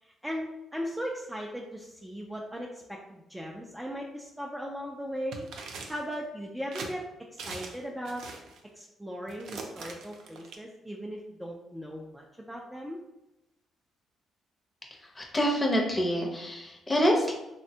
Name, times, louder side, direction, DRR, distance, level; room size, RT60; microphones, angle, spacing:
voice 1, 0.0-5.5 5.9-7.0 7.3-8.2 8.7-13.0, equal, 5° right, -1 dB, 0.3 m, -38 dB
sound 1, 5.3-6.2 6.7-6.9 7.4-7.8 8.1-8.6 9.3-10.6, right 4 dB, 80° right, 0.4 m, -41 dB
voice 2, 15.1-17.4, equal, 25° left, 0 dB, 0.7 m, -26 dB
3.3 x 2.1 x 2.7 m, 0.95 s
cardioid pair, 90°, 0 cm